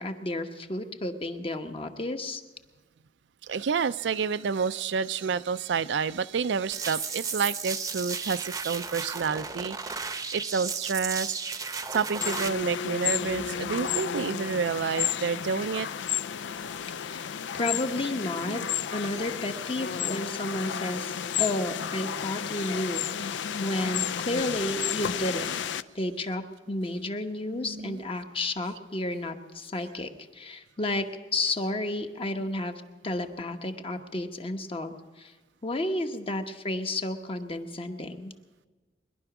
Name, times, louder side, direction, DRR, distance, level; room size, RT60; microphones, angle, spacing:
voice 1, 0.0-2.4 17.0-18.6 18.9-25.5 25.9-35.3 35.6-38.3, left 1 dB, 30° left, 6 dB, 1.0 m, -32 dB
voice 2, 3.5-9.8 10.3-11.3 11.9-15.9 18.5-18.7 27.5-28.0, right 6 dB, 80° right, 14 dB, 0.4 m, -29 dB
sound 1, 6.7-12.5, right 5 dB, 20° right, 0.7 m, -34 dB
sound 2, 12.2-25.8, left 8 dB, 90° left, 0.4 m, -32 dB
21.5 x 11.0 x 6.0 m, 1.3 s
head